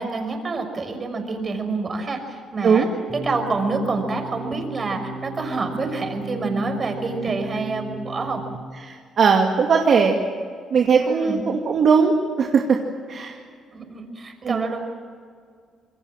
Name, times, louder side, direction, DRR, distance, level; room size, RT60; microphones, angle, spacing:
voice 1, 0.0-2.9 3.2-8.4 11.0-11.4 13.7-14.8, right 3 dB, 40° right, 5 dB, 5.8 m, -27 dB
sound 1, 3.1-8.6, right 2 dB, 10° left, 4.6 m, -36 dB
voice 2, 8.8-10.2 10.7-12.8 13.1-13.4 14.4-14.6, right 5 dB, 60° right, 1 dB, 2.3 m, -19 dB
27.0 x 22.0 x 7.6 m, 2.1 s
cardioid pair, 75°, 0 cm